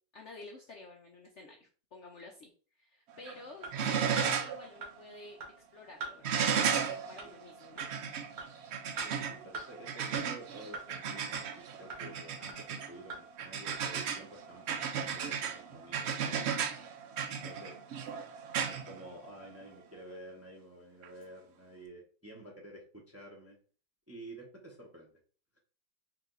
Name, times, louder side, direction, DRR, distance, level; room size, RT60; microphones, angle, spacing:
voice 1, 0.1-5.4 5.7-7.9, left 2 dB, 60° left, 1 dB, 0.8 m, -51 dB
sound 1, 3.1-3.4 3.7-4.6 5.0-5.1 6.2-19.6 21.0-21.1, right 7 dB, 75° right, 0.6 m, -35 dB
sound 2, 3.6-3.7 4.2-4.3 4.8-4.9 5.4-5.5 6.0-6.1 6.6-6.7 7.2-7.3 7.8-7.9 8.4-8.5 9.0-9.1 9.5-9.7 10.1-10.2 10.7-10.8 11.3-11.4 11.9-12.0 12.5-12.6 13.1-13.2 13.7-13.8, right 3 dB, 60° right, 2.4 m, -40 dB
voice 2, 3.9-4.3 9.0-16.9 17.4-17.8 18.7-23.6 24.1-25.1, right 1 dB, 10° right, -1 dB, 0.7 m, -50 dB
4.7 x 2.8 x 3.8 m, 0.40 s
omnidirectional pair, 1.8 m